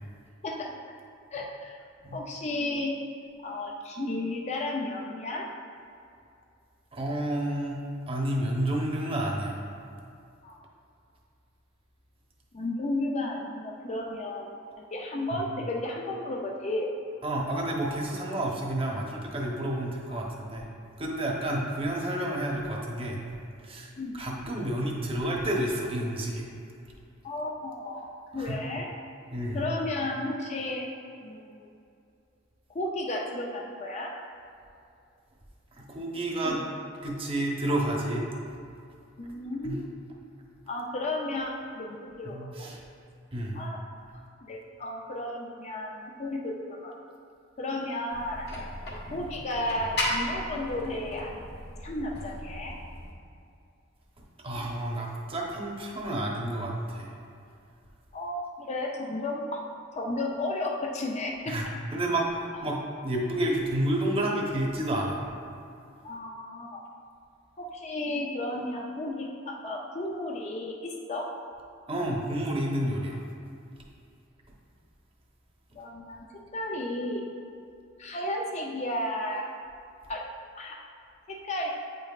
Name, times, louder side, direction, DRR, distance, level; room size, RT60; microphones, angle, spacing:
voice 1, 1.3-1.8 2.1-2.9 3.4-5.5 10.4-10.6 12.5-14.5 14.8-16.9 20.1-20.2 21.5-21.6 24.0-24.1 27.2-28.9 29.5-30.8 31.2-31.7 32.7-34.1 39.2-39.9 40.7-42.7 43.5-43.8 44.5-46.9 47.6-48.5 49.1-52.7 58.1-59.6 60.0-61.5 66.0-66.8 67.6-71.3 75.7-76.2 76.5-77.3 78.0-79.5 80.1-80.2 80.6-80.8 81.3-81.7, left 1 dB, 35° left, -1 dB, 0.5 m, -33 dB
voice 2, 6.9-7.8 8.1-9.6 15.3-15.4 17.2-20.7 21.0-23.2 23.6-26.5 28.3-28.5 29.3-29.6 35.8-36.6 37.0-38.2 39.6-39.8 42.2-42.8 43.3-43.6 54.4-57.1 61.5-65.2 71.9-73.2, right 1 dB, 30° right, -2 dB, 0.9 m, -30 dB
sound 1, 48.1-53.1, left 1 dB, 55° left, 1.4 m, -35 dB
8.7 x 5.3 x 2.4 m, 2.5 s
head